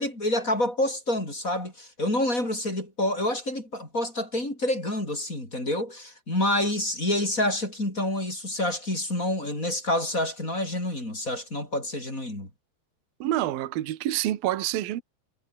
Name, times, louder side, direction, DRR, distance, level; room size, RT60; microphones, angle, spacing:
voice 1, 0.0-12.5, left 1 dB, 15° left, 7.1 m, -28 dB
voice 2, 13.2-15.0, right 14 dB, 60° right, 3.1 m, -27 dB
omnidirectional pair, 5.3 m